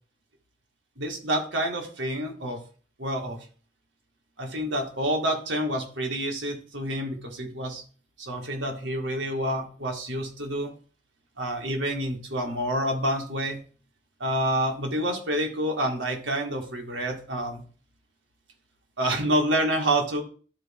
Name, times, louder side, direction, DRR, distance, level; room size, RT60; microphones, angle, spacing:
voice 1, 1.0-2.6 3.0-3.4 4.4-7.8 8.2-10.7 11.4-13.6 14.2-17.6 19.0-20.2, right 1 dB, 90° right, 2 dB, 2.0 m, -28 dB
12.0 x 4.2 x 3.7 m, 0.40 s
head